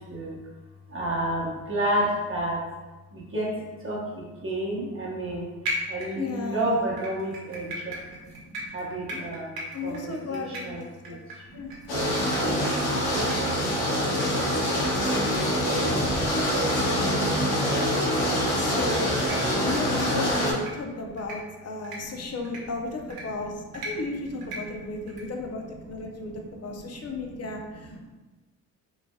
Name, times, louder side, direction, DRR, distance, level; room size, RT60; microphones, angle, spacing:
voice 1, 0.1-0.4 0.9-2.6 3.1-3.5 3.8-5.5 5.9-11.2 11.5-13.2 20.8-21.2 22.0-22.4 22.8-22.9 23.9-24.0 24.6-25.7 26.2-27.5 27.8-28.1, right 1 dB, 35° right, -5 dB, 1.0 m, -32 dB
sound 1, 5.6-6.5 7.0-13.0 13.3-13.4 13.7-13.8 14.2-14.3 14.6-14.7 15.1-15.2 15.6-15.7 16.1-16.2 17.2-17.3 17.8-18.0 18.5-18.7 19.1-19.4 19.8-20.1 20.5-20.7 21.2-21.4 21.8-22.0 22.4-22.6 23.1-23.2 23.7-23.9 24.4-24.6 25.1-25.2, right 1 dB, 65° right, 0.9 m, -36 dB
voice 2, 6.2-6.8 9.7-10.9 11.5-11.7 18.6-19.1 19.4-23.5 23.8-26.3 26.6-28.1, left 3 dB, 40° left, 2 dB, 0.6 m, -34 dB
sound 2, 11.9-20.5, equal, 85° left, 0.8 m, -25 dB
3.0 x 2.5 x 2.2 m, 1.2 s
cardioid pair, 65°, 38 cm